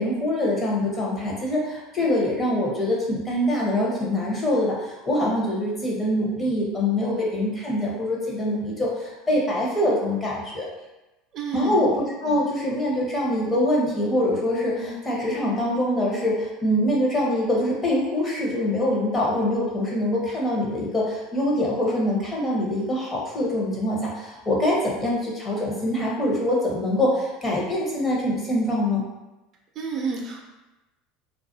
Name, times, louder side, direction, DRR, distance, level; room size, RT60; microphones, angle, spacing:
voice 1, 0.0-10.7 11.5-29.0, left 1 dB, 25° left, -4 dB, 0.8 m, -24 dB
voice 2, 11.3-11.9 14.8-15.0 29.8-30.4, right 4 dB, 50° right, 0 dB, 0.5 m, -30 dB
2.3 x 2.2 x 2.6 m, 1.0 s
supercardioid pair, 110°, 0 cm